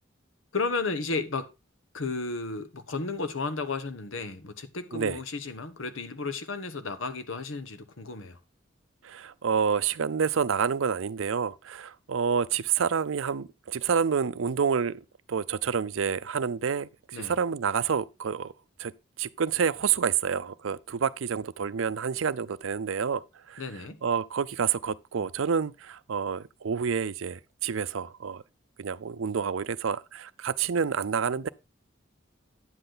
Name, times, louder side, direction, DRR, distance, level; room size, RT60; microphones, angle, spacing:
voice 1, 0.5-1.5 1.9-8.4 17.1-17.4 23.6-24.0, left 3 dB, 85° left, 1.1 m, -33 dB
voice 2, 9.0-18.5 18.8-18.9 19.2-23.2 23.5-23.6 24.0-28.4 28.8-31.5, right 6 dB, 90° right, 0.5 m, -28 dB
9.6 x 7.9 x 3.9 m
head